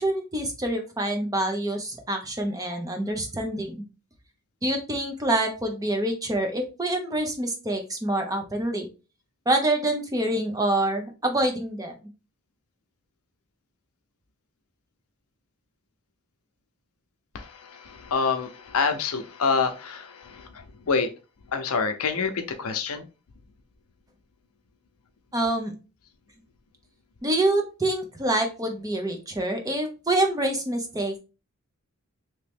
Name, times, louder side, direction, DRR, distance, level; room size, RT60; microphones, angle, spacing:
voice 1, 0.0-3.8 4.6-8.9 9.5-12.1 25.3-25.7 27.2-31.2, right 1 dB, 15° right, 4 dB, 0.6 m, -26 dB
voice 2, 17.3-20.5 20.9-21.1 21.5-23.1, left 5 dB, 80° left, 7 dB, 0.6 m, -27 dB
3.0 x 2.9 x 3.4 m, 0.31 s
head